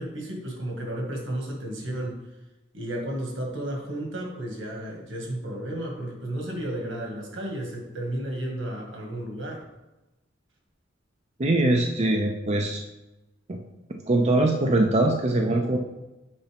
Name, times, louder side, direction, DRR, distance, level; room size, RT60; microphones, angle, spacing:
voice 1, 0.0-2.2 2.7-9.6, right 1 dB, 75° right, 0 dB, 1.9 m, -33 dB
voice 2, 11.4-12.8 13.5-13.6 14.1-15.8, right 2 dB, 35° right, 2 dB, 0.6 m, -22 dB
8.1 x 5.5 x 3.5 m, 1.0 s
head